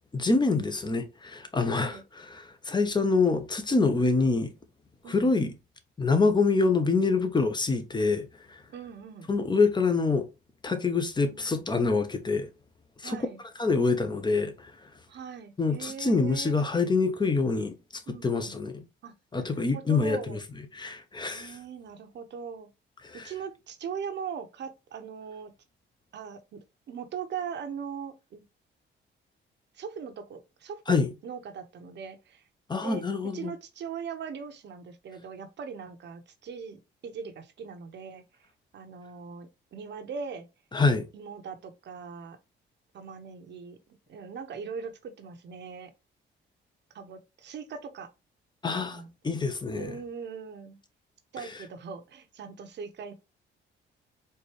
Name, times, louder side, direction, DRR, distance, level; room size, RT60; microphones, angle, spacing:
voice 1, 0.1-4.5 5.1-5.5 6.0-8.6 9.3-10.3 10.6-12.5 13.0-13.2 13.6-14.7 15.6-17.7 18.1-18.8 19.3-20.4 20.7-21.6 23.0-23.3 30.9-31.1 32.7-33.5 40.7-41.0 48.6-49.9, left 4 dB, 20° left, 0.8 m, -26 dB
voice 2, 1.7-2.0 4.2-4.4 5.0-5.3 8.7-9.3 11.3-11.6 13.0-13.4 15.1-16.6 18.1-18.5 19.0-19.1 19.4-20.4 21.3-22.7 23.1-25.5 26.1-28.4 29.7-32.4 32.8-33.0 33.3-38.2 38.7-40.5 41.1-42.4 42.9-45.9 46.9-48.1 48.8-49.1 49.8-50.8 51.3-53.1, right 6 dB, 60° right, 0.9 m, -40 dB
4.4 x 2.6 x 3.3 m
cardioid pair, 90°, 20 cm